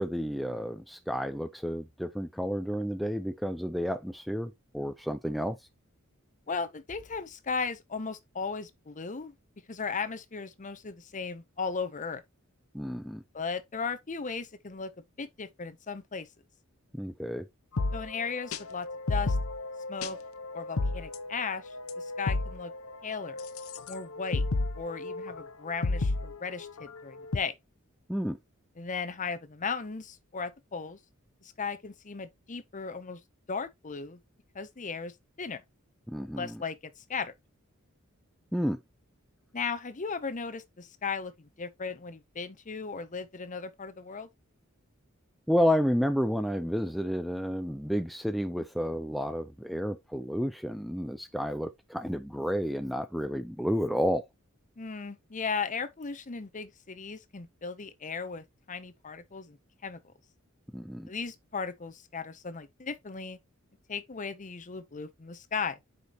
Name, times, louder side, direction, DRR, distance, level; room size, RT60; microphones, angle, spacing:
voice 1, 0.0-5.6 12.7-13.2 16.9-17.5 28.1-28.4 36.1-36.6 38.5-38.8 45.5-54.3 60.7-61.1, equal, ahead, 0.4 m, -31 dB
voice 2, 6.5-9.3 9.7-12.2 13.3-14.9 15.2-16.3 17.9-19.4 19.9-20.2 20.5-22.7 23.0-23.4 23.9-24.4 24.7-27.6 28.8-31.0 31.4-33.2 33.5-34.2 34.5-35.6 36.4-37.3 39.5-44.3 54.8-59.6 59.8-60.0 61.1-63.4 63.9-65.8, left 5 dB, 35° left, 0.8 m, -36 dB
sound 1, 17.8-27.4, left 3 dB, 75° left, 0.7 m, -33 dB
8.0 x 5.1 x 3.0 m
head